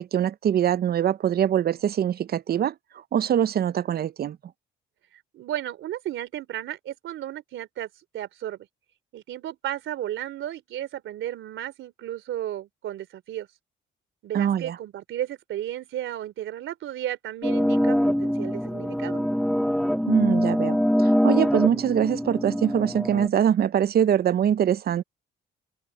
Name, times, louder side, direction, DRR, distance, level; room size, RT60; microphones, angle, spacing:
voice 1, 0.0-2.7 3.1-4.4 14.3-14.8 20.1-25.0, right 9 dB, 50° right, 0.7 m, -23 dB
voice 2, 5.1-8.7 9.1-13.5 14.2-19.2, right 12 dB, 80° right, 3.5 m, -34 dB
sound 1, 17.4-23.3, equal, ahead, 0.7 m, -24 dB
cardioid pair, 90°, 20 cm